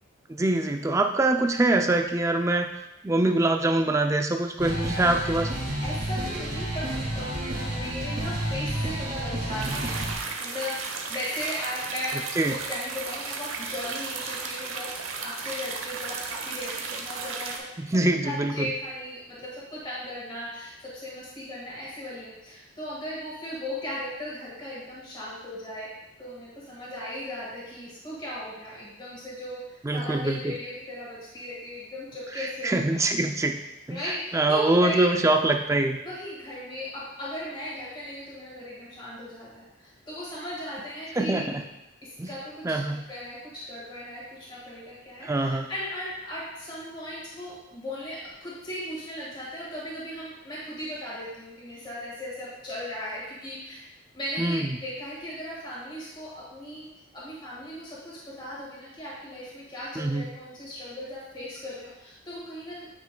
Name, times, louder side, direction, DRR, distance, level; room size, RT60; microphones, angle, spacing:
voice 1, 0.3-2.7 3.0-5.5 12.4-12.6 17.8-18.7 29.8-30.6 32.6-33.6 33.9-34.0 34.3-36.0 41.2-41.6 42.2-42.3 42.6-43.0 45.2-45.7 54.4-54.8 60.0-60.3, right 2 dB, 15° right, 5 dB, 0.4 m, -24 dB
sound 1, 4.6-10.1, right 1 dB, 45° right, 1.9 m, -30 dB
voice 2, 5.8-6.9 7.1-9.9 10.4-10.8 11.1-14.9 15.2-25.9 26.2-32.8 33.9-35.2 36.0-41.4 42.0-42.8 43.1-53.8 54.1-56.9 57.1-62.8, left 1 dB, 25° left, -7 dB, 1.7 m, -37 dB
sound 2, 9.6-17.6, right 4 dB, 75° right, 0.9 m, -35 dB
9.3 x 5.7 x 2.2 m, 0.94 s
head